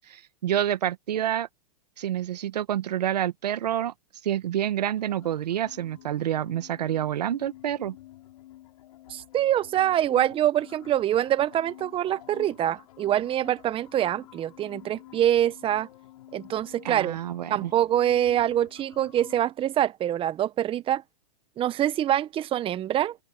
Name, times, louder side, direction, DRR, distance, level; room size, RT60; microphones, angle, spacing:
voice 1, 0.1-1.5 2.0-3.9 4.2-7.9 16.8-17.7, right 11 dB, 75° right, 1.4 m, -28 dB
sound 1, 5.0-19.4, left 15 dB, 65° left, 6.7 m, -50 dB
voice 2, 9.1-15.9 16.3-17.2 17.5-21.0 21.6-23.2, right 11 dB, 25° right, 1.2 m, -25 dB
hypercardioid pair, 115°, 21 cm